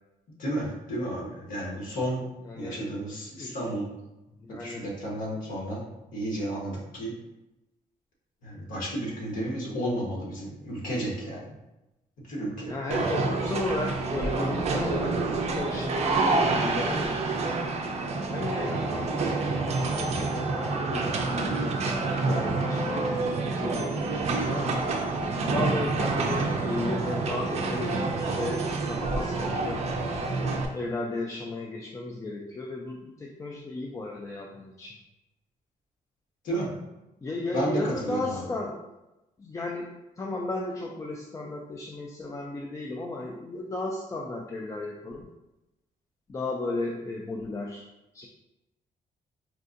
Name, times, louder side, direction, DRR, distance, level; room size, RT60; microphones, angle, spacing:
voice 1, 0.4-2.2 2.6-3.9 4.6-5.8 6.1-7.1 8.4-11.5 12.3-13.0 36.4-36.7 37.5-38.5, right 1 dB, 70° left, -3 dB, 1.2 m, -32 dB
voice 2, 2.4-3.1 3.4-3.6 4.5-4.8 12.7-17.2 18.3-24.8 25.5-29.8 30.7-35.0 37.2-38.8 39.4-39.9 40.2-45.2 46.3-47.8 48.1-48.3, left 2 dB, 20° left, -1 dB, 0.3 m, -34 dB
sound 1, 12.9-30.7, right 3 dB, 45° right, 0.5 m, -28 dB
4.4 x 2.5 x 2.5 m, 0.97 s
cardioid pair, 145°, 15 cm